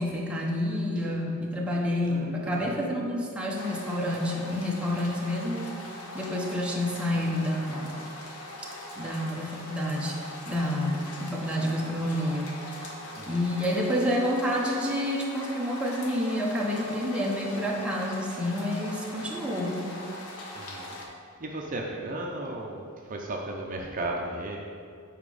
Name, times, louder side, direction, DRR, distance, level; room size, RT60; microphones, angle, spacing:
voice 1, 0.0-5.9 6.1-8.0 9.0-12.9 13.3-19.8, left 1 dB, 5° right, -3 dB, 0.9 m, -29 dB
voice 2, 2.1-2.8 13.2-13.5 20.5-20.9 21.4-24.6, right 1 dB, 40° right, -1 dB, 0.6 m, -35 dB
sound 1, 3.6-21.1, left 1 dB, 80° left, 1.1 m, -41 dB
7.4 x 4.9 x 4.9 m, 2.4 s
head